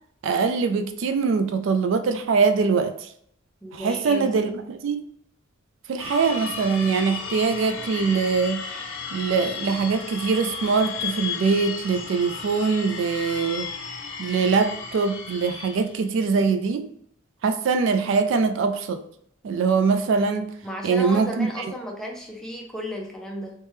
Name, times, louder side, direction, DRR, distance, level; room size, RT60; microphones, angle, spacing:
voice 1, 0.2-3.1 3.7-5.0 5.9-8.6 9.1-13.7 14.2-16.9 17.4-19.0 19.4-20.5 20.8-21.7, right 5 dB, 65° right, 0.3 m, -23 dB
voice 2, 3.6-4.6 18.1-18.3 20.6-23.5, equal, 5° left, 0.6 m, -34 dB
sound 1, 6.0-16.0, left 5 dB, 65° left, 0.7 m, -34 dB
3.3 x 3.2 x 3.1 m
head